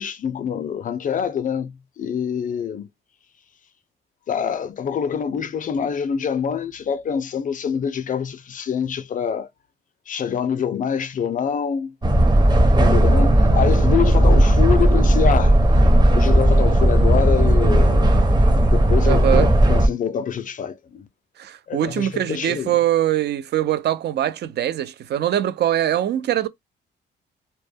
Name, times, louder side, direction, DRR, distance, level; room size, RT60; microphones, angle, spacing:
voice 1, 0.0-2.9 4.3-9.5 10.1-11.9 12.8-15.6 16.1-18.1 18.6-21.1 21.7-22.8, left 7 dB, 40° left, 0.4 m, -25 dB
sound 1, 12.0-19.9, right 1 dB, 20° right, 0.7 m, -15 dB
voice 2, 19.1-19.5 21.4-26.5, right 11 dB, 60° right, 0.4 m, -22 dB
2.1 x 2.1 x 3.3 m
cardioid pair, 90°, 20 cm